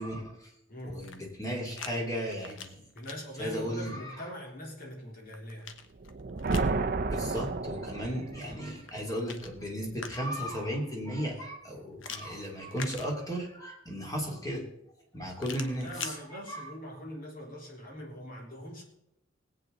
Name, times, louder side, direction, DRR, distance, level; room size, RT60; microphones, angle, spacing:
voice 1, 0.0-0.5 0.9-2.8 3.4-4.2 7.1-14.6 15.1-16.2 16.5-16.7, equal, 20° left, 0 dB, 3.0 m, -35 dB
voice 2, 0.7-1.1 2.9-5.7 8.4-8.6 15.7-18.8, equal, 50° left, -1 dB, 3.6 m, -42 dB
sound 1, 0.9-1.9 2.3-3.2 4.9-6.8 8.7-10.5 12.0-13.6 15.4-16.2, left 6 dB, 85° left, 1.1 m, -44 dB
sound 2, 6.0-8.6, right 3 dB, 50° right, 0.6 m, -31 dB
20.0 x 8.6 x 4.0 m, 0.83 s
head